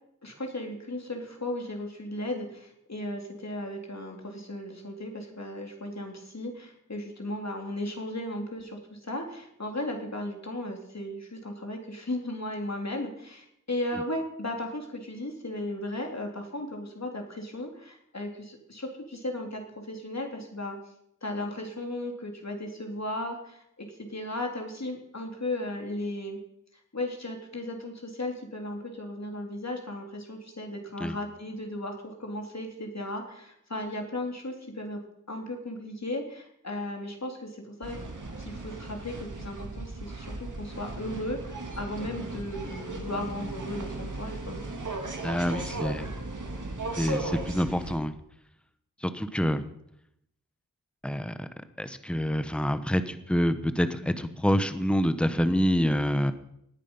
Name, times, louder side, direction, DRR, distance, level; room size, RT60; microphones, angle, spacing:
voice 1, 0.2-20.8 21.2-26.4 26.9-35.0 35.3-38.0 38.4-44.6, left 1 dB, 55° left, 2 dB, 3.3 m, -36 dB
sound 1, 37.8-48.0, right 2 dB, 70° right, 2.5 m, -36 dB
voice 2, 45.2-46.1 47.0-48.1 49.0-49.6 51.0-51.5 51.8-56.3, equal, 5° left, 11 dB, 1.2 m, -27 dB
18.5 x 10.0 x 5.6 m, 0.76 s
wide cardioid pair, 45°, 32 cm